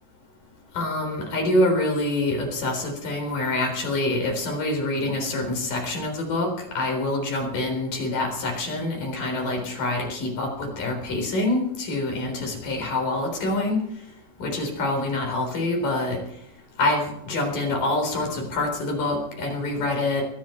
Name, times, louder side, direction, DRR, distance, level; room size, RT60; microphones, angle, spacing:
voice 1, 0.7-6.5 6.8-13.8 14.4-16.2 16.8-20.2, left 2 dB, 80° left, 1 dB, 5.6 m, -26 dB
22.0 x 10.5 x 4.5 m, 0.75 s
omnidirectional pair, 3.8 m